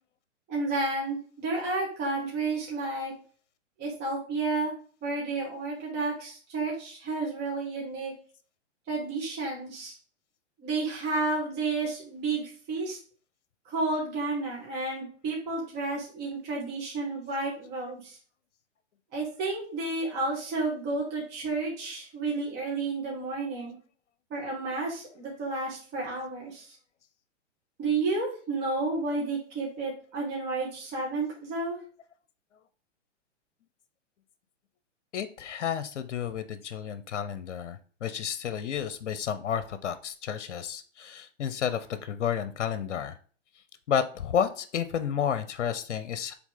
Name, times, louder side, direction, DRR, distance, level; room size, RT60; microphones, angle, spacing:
voice 1, 0.5-3.1 3.8-4.7 5.0-8.1 8.9-9.9 10.6-13.0 13.7-18.1 19.1-23.7 24.3-26.6 27.8-31.8, right 3 dB, 30° right, -3 dB, 2.3 m, -31 dB
voice 2, 35.1-43.2 43.9-46.3, left 8 dB, 70° left, 12 dB, 0.8 m, -31 dB
5.9 x 4.0 x 3.9 m, 0.42 s
hypercardioid pair, 140°, 36 cm